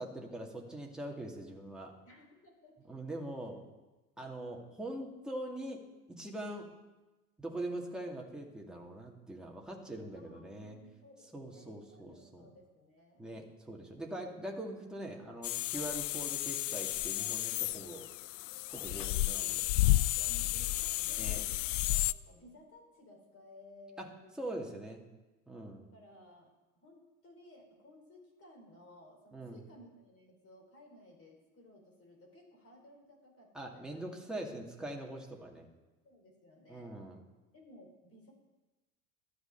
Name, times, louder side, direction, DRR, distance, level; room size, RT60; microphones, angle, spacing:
voice 1, 0.0-1.9 2.9-3.6 4.2-5.8 6.1-6.7 7.4-10.8 11.3-12.4 13.2-18.0 18.7-19.7 21.2-21.4 24.0-24.1 24.4-25.0 25.5-25.9 29.3-29.6 33.5-35.7 36.7-37.2, right 1 dB, ahead, -1 dB, 2.4 m, -42 dB
voice 2, 2.0-2.9 10.1-13.2 20.1-24.7 25.9-26.5 26.8-34.1 36.0-36.9 37.5-38.3, left 1 dB, 30° left, 1 dB, 4.8 m, -58 dB
sound 1, 15.4-22.1, left 17 dB, 60° left, 0.5 m, -32 dB
13.0 x 7.8 x 6.8 m, 1.1 s
figure-of-eight pair, 70°, 42 cm